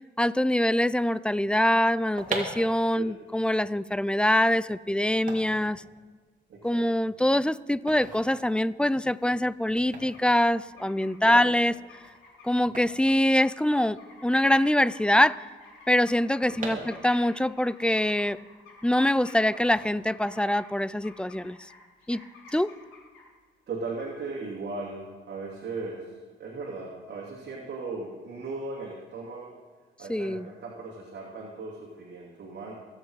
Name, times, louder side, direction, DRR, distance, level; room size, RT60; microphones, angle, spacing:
voice 1, 0.2-5.8 6.6-11.7 12.4-14.0 14.2-15.5 15.9-18.4 18.8-21.6 22.1-22.2 22.5-22.7 30.1-30.5, left 1 dB, 5° left, 18 dB, 0.3 m, -24 dB
sound 1, 1.9-14.0 14.3-14.4 14.6-17.4 17.9-18.9 19.4-20.4 20.8-21.1, right 3 dB, 40° right, 2.7 m, -41 dB
voice 2, 6.5-7.1 11.2-11.6 16.6-16.9 23.7-26.1 26.4-29.5 30.0-32.7, right 3 dB, 60° right, -4 dB, 2.7 m, -37 dB
sound 2, 9.0-9.5 10.1-10.2 10.5-23.2 24.0-24.1, left 4 dB, 85° left, 3.7 m, -51 dB
24.0 x 8.1 x 4.7 m, 1.5 s
cardioid pair, 90°, 20 cm